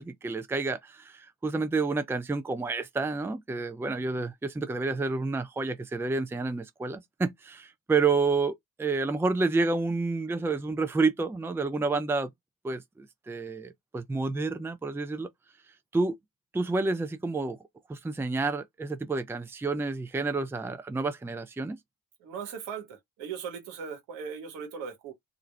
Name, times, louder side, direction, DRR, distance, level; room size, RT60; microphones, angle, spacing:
voice 1, 0.0-12.3 12.6-15.3 15.9-16.2 16.5-17.6 17.9-21.8, right 3 dB, 5° right, 0.5 m, -29 dB
voice 2, 22.2-25.1, right 6 dB, 75° right, 1.3 m, -38 dB
2.5 x 2.3 x 3.3 m
hypercardioid pair, 55°, 39 cm